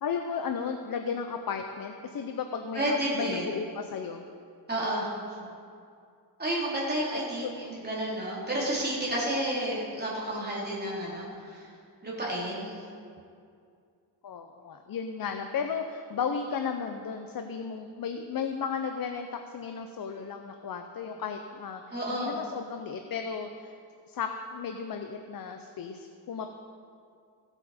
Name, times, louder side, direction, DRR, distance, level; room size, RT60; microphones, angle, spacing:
voice 1, 0.0-4.3 5.4-5.6 7.4-7.8 14.2-23.7 24.1-26.5, left 6 dB, 55° left, 6 dB, 0.7 m, -34 dB
voice 2, 2.7-3.5 4.7-5.1 6.4-11.7 12.0-12.8 21.9-22.4, right 1 dB, 25° right, -6 dB, 3.4 m, -31 dB
16.0 x 8.0 x 4.3 m, 2.4 s
wide cardioid pair, 130°, 42 cm